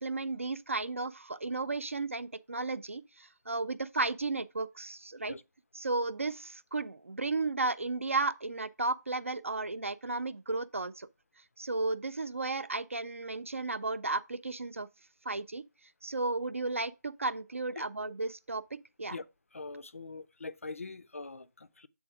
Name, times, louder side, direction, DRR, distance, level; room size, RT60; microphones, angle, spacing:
voice 1, 0.0-5.3 5.8-11.1 11.6-14.9 15.3-15.6 16.0-19.2, right 3 dB, 45° right, 0.4 m, -34 dB
voice 2, 19.5-21.9, left 3 dB, 45° left, 0.4 m, -43 dB
7.9 x 3.6 x 4.6 m
figure-of-eight pair, 175°, 10 cm